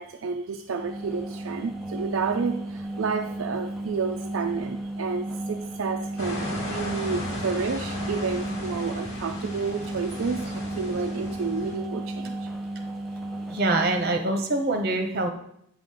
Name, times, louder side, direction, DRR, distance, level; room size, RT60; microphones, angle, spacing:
voice 1, 0.0-12.5, right 5 dB, 70° right, 5 dB, 0.4 m, -30 dB
sound 1, 0.7-14.3, right 1 dB, ahead, 0.6 m, -34 dB
sound 2, 6.2-11.8, left 1 dB, 90° left, 2.3 m, -36 dB
voice 2, 13.5-15.3, right 2 dB, 50° right, 4 dB, 1.1 m, -24 dB
8.7 x 6.1 x 3.8 m, 0.74 s
head